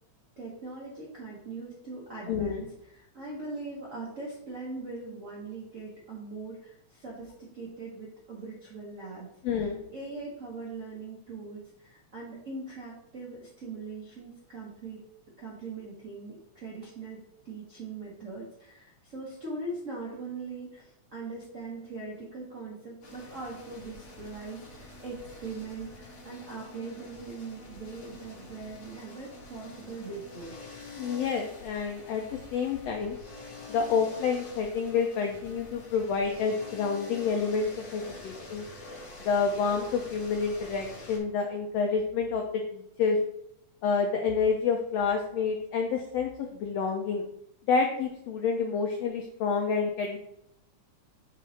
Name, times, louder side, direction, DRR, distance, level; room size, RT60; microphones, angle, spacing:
voice 1, 0.4-9.5 9.9-15.0 15.4-30.5, right 3 dB, 85° right, -4 dB, 0.6 m, -41 dB
voice 2, 2.3-2.6 9.4-9.8 31.0-33.2 33.7-38.6 39.2-43.2 43.8-47.2 47.7-50.2, left 5 dB, 85° left, 3 dB, 1.4 m, -28 dB
sound 1, 23.0-41.2, left 2 dB, 60° left, 2.4 m, -47 dB
7.4 x 3.1 x 4.1 m, 0.78 s
omnidirectional pair, 3.6 m